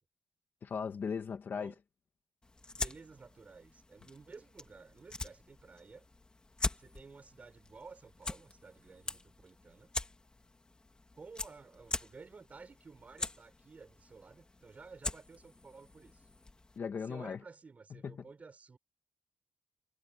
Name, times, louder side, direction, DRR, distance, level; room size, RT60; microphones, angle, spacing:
voice 1, 0.6-1.7 16.8-17.4 17.9-18.3, left 6 dB, 40° left, 2.1 m, -38 dB
sound 1, 2.4-16.8, left 2 dB, 15° left, 2.6 m, -43 dB
voice 2, 2.7-6.0 6.8-9.9 11.1-16.3 17.1-18.8, right 4 dB, 30° right, 6.4 m, -54 dB
wide cardioid pair, 175°, 5 cm